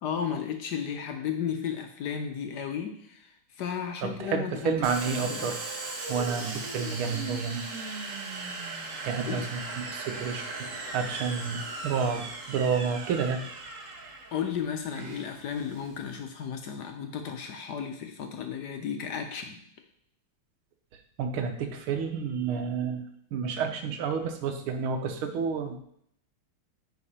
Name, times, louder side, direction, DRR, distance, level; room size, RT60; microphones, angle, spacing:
voice 1, 0.0-4.7 5.2-5.6 9.2-9.5 14.3-19.6, left 8 dB, 65° left, 5 dB, 1.1 m, -34 dB
voice 2, 4.0-5.6 6.1-7.6 9.0-10.5 10.9-13.4 21.2-23.0 23.3-25.8, right 6 dB, 85° right, 6 dB, 1.7 m, -30 dB
Domestic sounds home sounds, 4.8-16.2, right 3 dB, 45° right, 1.2 m, -38 dB
9.9 x 4.0 x 4.2 m, 0.69 s
omnidirectional pair, 2.3 m